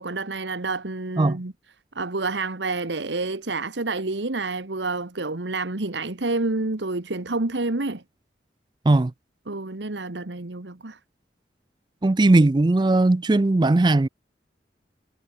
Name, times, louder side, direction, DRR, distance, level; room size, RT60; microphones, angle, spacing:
voice 1, 0.0-1.5 1.9-8.0 9.5-11.0, right 3 dB, 85° right, 1.5 m, -28 dB
voice 2, 12.0-14.1, right 2 dB, 25° right, 0.4 m, -18 dB
head